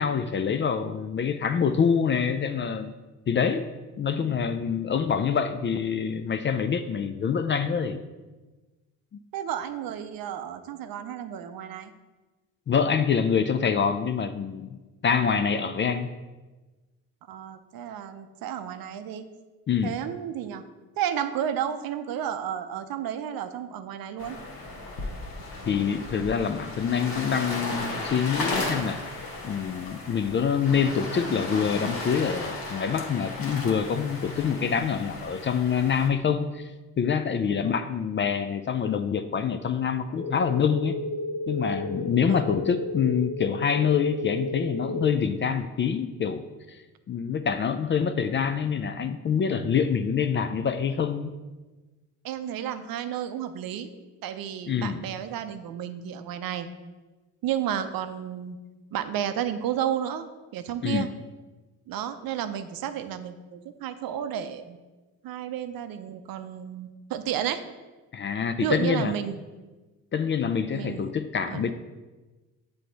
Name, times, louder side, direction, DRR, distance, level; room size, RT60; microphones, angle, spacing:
voice 1, 0.0-2.9 3.3-3.7 4.0-8.0 12.7-16.1 19.7-19.9 25.7-29.0 29.4-36.7 37.0-41.0 41.5-46.4 46.7-46.8 47.1-51.3 54.7-55.0 60.8-61.1 68.1-69.1 70.1-71.7, left 6 dB, 30° left, 10 dB, 0.4 m, -26 dB
voice 2, 9.3-11.9 17.3-19.3 19.8-20.6 21.0-24.4 42.2-42.7 52.2-53.9 54.2-56.7 57.4-58.6 58.9-60.3 60.5-61.1 61.9-64.8 65.2-67.6 68.6-69.4 70.7-71.1 71.5-71.7, right 10 dB, 65° right, 9 dB, 0.6 m, -32 dB
sound 1, 24.2-36.1, left 2 dB, 65° left, 1.1 m, -35 dB
sound 2, 40.1-45.1, left 2 dB, 85° left, 0.6 m, -33 dB
7.5 x 3.4 x 4.0 m, 1.2 s
hypercardioid pair, 55°, 39 cm